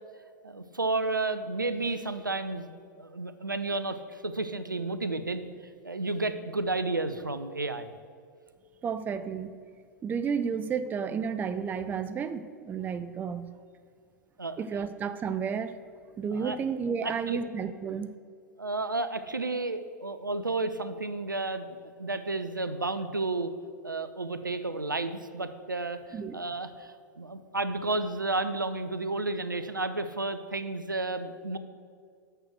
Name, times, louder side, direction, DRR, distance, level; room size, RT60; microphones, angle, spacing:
voice 1, 0.4-2.7 3.0-5.4 5.8-7.9 14.4-14.6 16.3-16.6 17.0-17.4 18.6-21.7 22.0-23.5 23.8-31.6, right 2 dB, 90° right, 11 dB, 0.5 m, -32 dB
voice 2, 8.8-9.5 10.0-13.5 14.6-15.7 16.2-18.1 26.1-26.4, right 6 dB, 15° right, 12 dB, 0.4 m, -32 dB
6.6 x 6.0 x 6.4 m, 2.2 s
figure-of-eight pair, 95°, 10 cm